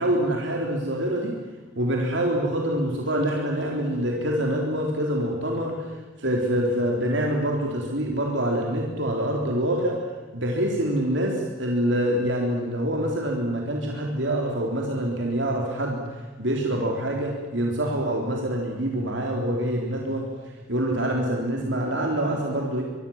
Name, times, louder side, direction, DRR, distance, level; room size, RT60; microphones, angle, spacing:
voice 1, 0.0-1.3 1.8-10.0 10.3-20.3 20.7-22.8, right 1 dB, 65° right, 0 dB, 3.9 m, -25 dB
25.5 x 23.5 x 7.4 m, 1.4 s
head